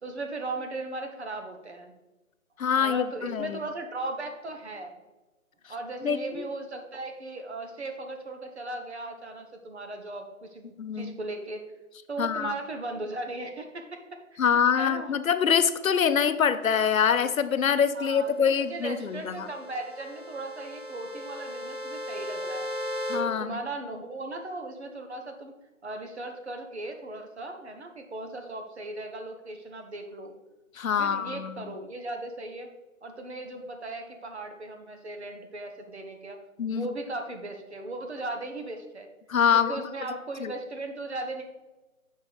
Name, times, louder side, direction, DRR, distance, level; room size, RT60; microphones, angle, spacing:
voice 1, 0.0-1.9 2.8-4.9 5.7-11.6 12.1-14.0 14.3-15.1 17.9-22.7 23.3-25.5 25.8-30.3 31.0-32.7 33.0-36.4 36.7-39.1 39.5-41.5, right 2 dB, 50° right, 5 dB, 1.0 m, -37 dB
voice 2, 2.6-3.6 6.0-6.5 10.8-11.1 12.2-12.5 14.4-19.5 23.1-23.6 30.8-31.7 36.6-36.9 39.3-39.8 40.4-40.5, left 7 dB, 70° left, 11 dB, 0.7 m, -25 dB
sound 1, 18.2-23.1, left 1 dB, 10° right, 1.6 m, -37 dB
6.7 x 4.6 x 4.8 m, 1.1 s
hypercardioid pair, 180°, 42 cm